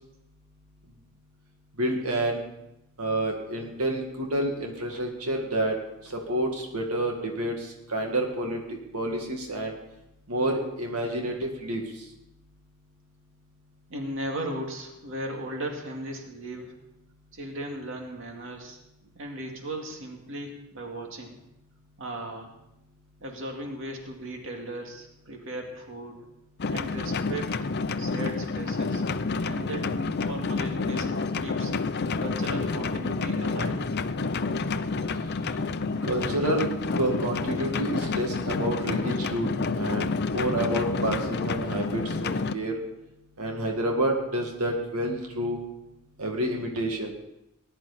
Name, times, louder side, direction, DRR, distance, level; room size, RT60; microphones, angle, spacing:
voice 1, 1.8-2.4 3.0-5.8 6.0-9.8 10.3-11.8 36.0-42.7 43.4-45.6 46.2-47.1, right 1 dB, 85° right, 1 dB, 2.0 m, -29 dB
voice 2, 13.9-16.8 17.3-18.8 19.2-21.4 22.0-22.5 23.2-26.3 26.7-27.7 28.0-29.0 29.4-31.7 32.2-33.9, right 1 dB, 60° right, 1 dB, 2.2 m, -37 dB
sound 1, 26.6-42.5, left 4 dB, 50° left, 0.6 m, -29 dB
19.5 x 11.5 x 4.2 m, 0.88 s
head